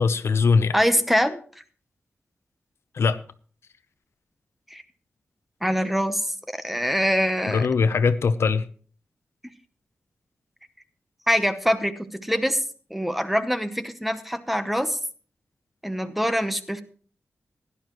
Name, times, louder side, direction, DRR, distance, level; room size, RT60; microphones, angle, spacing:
voice 1, 0.0-0.7 2.9-3.2 7.5-8.7, left 5 dB, 70° left, 12 dB, 0.7 m, -21 dB
voice 2, 0.7-1.4 4.7-4.8 5.6-7.6 11.3-12.6 12.9-15.0 15.8-16.8, equal, 5° right, 10 dB, 0.8 m, -24 dB
16.5 x 11.0 x 3.0 m, 0.43 s
wide cardioid pair, 130°, 5 cm